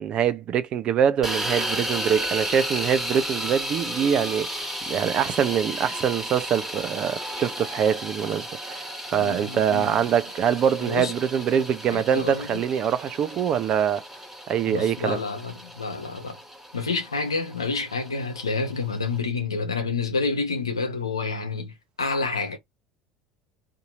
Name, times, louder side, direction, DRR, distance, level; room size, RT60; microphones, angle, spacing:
voice 1, 0.0-4.6 4.9-14.0 14.5-15.2, right 8 dB, 40° right, 0.5 m, -24 dB
sound 1, 1.2-19.2, equal, 5° right, 1.3 m, -34 dB
voice 2, 9.1-10.0 10.9-11.1 11.9-12.6 14.7-16.4 16.7-22.6, left 4 dB, 80° left, 0.8 m, -29 dB
2.7 x 2.6 x 2.5 m
figure-of-eight pair, 65°, 3 cm